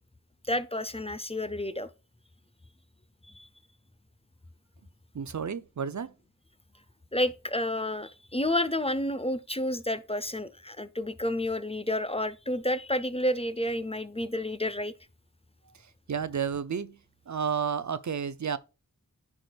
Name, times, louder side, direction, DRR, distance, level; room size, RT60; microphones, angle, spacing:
voice 1, 0.5-1.9 3.3-3.5 7.1-14.9, left 1 dB, 20° left, 0.6 m, -30 dB
voice 2, 5.1-6.1 16.1-17.0 17.3-18.6, right 7 dB, 60° right, 0.5 m, -31 dB
10.5 x 4.9 x 2.3 m
wide cardioid pair, 45°, 33 cm